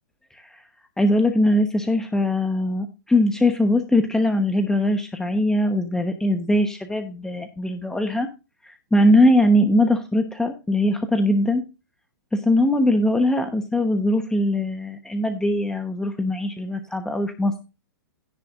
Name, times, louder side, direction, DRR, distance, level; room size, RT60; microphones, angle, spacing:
voice 1, 1.0-8.3 8.6-11.6 12.3-17.5, left 1 dB, 5° left, 6 dB, 1.0 m, -21 dB
16.5 x 6.9 x 2.5 m, 0.30 s
hypercardioid pair, 125°, 11 cm